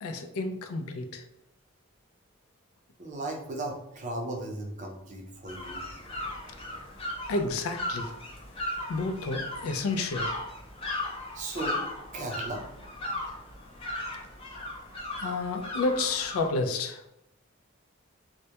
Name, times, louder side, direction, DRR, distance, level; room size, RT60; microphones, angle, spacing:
voice 1, 0.0-1.2 7.3-8.1 8.9-10.3 15.2-17.0, left 3 dB, 90° left, 6 dB, 0.3 m, -30 dB
voice 2, 3.0-5.8 11.3-11.8 12.1-12.6, right 2 dB, 35° right, 1 dB, 0.4 m, -36 dB
sound 1, 5.5-16.5, left 1 dB, 25° left, 0.4 m, -37 dB
2.1 x 2.1 x 2.7 m, 0.82 s
head